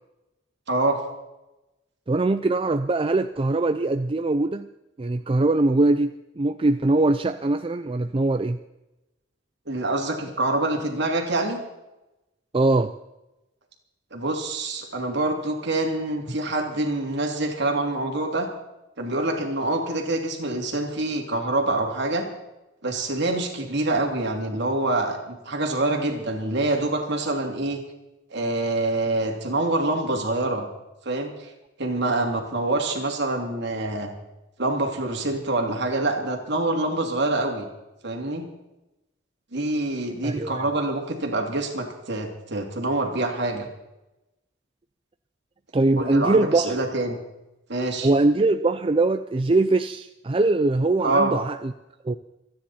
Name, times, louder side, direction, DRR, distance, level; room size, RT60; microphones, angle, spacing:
voice 1, 0.7-1.0 9.7-11.6 14.1-18.5 19.0-22.3 22.8-27.8 28.3-30.6 31.0-31.5 31.8-34.1 34.6-37.7 38.0-38.5 39.5-43.7 46.0-47.2 47.7-48.1 51.0-51.3, right 2 dB, 55° right, 2 dB, 2.9 m, -26 dB
voice 2, 2.1-4.7 5.0-8.6 12.5-12.9 40.2-40.6 45.7-46.8 48.0-51.7 52.0-52.2, right 2 dB, 25° right, 9 dB, 0.4 m, -22 dB
27.5 x 10.5 x 4.3 m, 0.97 s
head